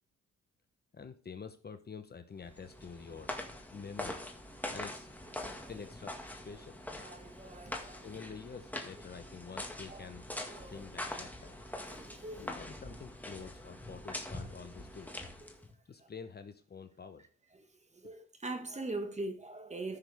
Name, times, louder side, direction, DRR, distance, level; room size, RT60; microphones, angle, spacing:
voice 1, 0.9-3.3 3.7-4.3 4.7-5.1 5.7-6.8 8.0-10.3 10.7-11.6 12.3-15.1 15.9-17.2, left 5 dB, 35° left, 0.9 m, -47 dB
sound 1, 2.4-15.7, left 1 dB, 5° left, 1.7 m, -44 dB
voice 2, 7.0-8.0 9.9-10.1 10.5-10.8 11.8-12.5 16.0-16.1 17.5-17.7 18.0-20.0, right 2 dB, 25° right, 1.6 m, -42 dB
14.5 x 6.2 x 3.5 m
cardioid pair, 90°, 30 cm